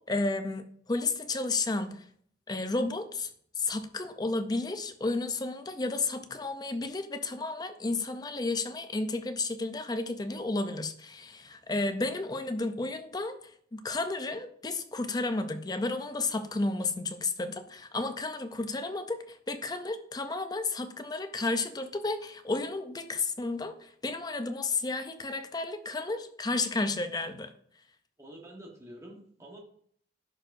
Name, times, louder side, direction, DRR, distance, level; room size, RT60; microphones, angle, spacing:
voice 1, 0.1-2.0 2.5-3.3 3.6-13.4 13.7-27.5, left 3 dB, 20° left, 9 dB, 0.5 m, -32 dB
voice 2, 28.2-29.6, right 1 dB, 15° right, -1 dB, 1.1 m, -47 dB
11.0 x 4.6 x 2.6 m, 0.62 s
head